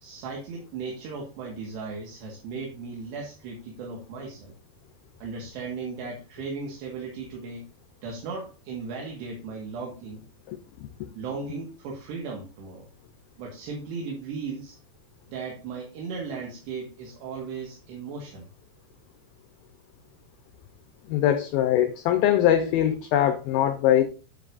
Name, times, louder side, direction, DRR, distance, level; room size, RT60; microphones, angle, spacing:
voice 1, 0.0-4.5 5.2-7.7 8.0-10.2 11.2-12.9 13.4-14.8 15.3-18.5, right 4 dB, 80° right, 3.7 m, -36 dB
voice 2, 21.1-24.0, left 11 dB, 80° left, 2.2 m, -22 dB
10.0 x 7.6 x 2.5 m
omnidirectional pair, 5.0 m